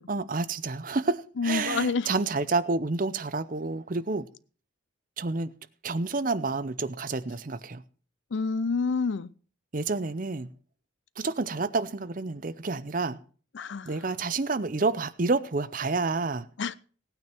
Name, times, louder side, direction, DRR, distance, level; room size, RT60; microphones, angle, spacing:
voice 1, 0.1-4.3 5.2-5.5 5.8-7.8 9.7-10.5 11.2-13.2 13.8-16.5, right 3 dB, 40° right, 0.6 m, -29 dB
voice 2, 1.4-2.2 8.3-9.3 13.5-13.9 16.6-16.8, left 4 dB, 65° left, 0.5 m, -28 dB
17.0 x 9.1 x 4.5 m
head